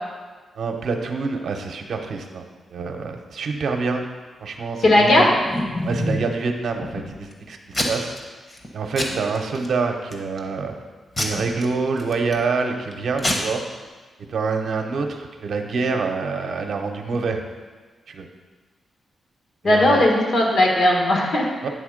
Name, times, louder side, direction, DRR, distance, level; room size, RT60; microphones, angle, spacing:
voice 1, 0.6-2.4 2.7-4.0 4.4-5.3 5.8-8.1 8.7-10.7 11.2-13.6 14.3-17.4 18.1-18.3 19.6-20.0 21.6-21.7, right 4 dB, 65° right, 3 dB, 0.7 m, -26 dB
voice 2, 4.8-5.2 19.6-21.4, left 1 dB, 65° left, -1 dB, 1.6 m, -17 dB
Packing tape duct tape / Tearing, 5.0-6.3 6.8-7.3 7.7-8.2 8.5-8.7 9.0-9.7 10.1-10.5 11.2-12.4 12.9-13.0 13.2-13.3, left 1 dB, 30° left, 1.0 m, -27 dB
9.1 x 3.6 x 5.0 m, 1.4 s
wide cardioid pair, 120°, 0 cm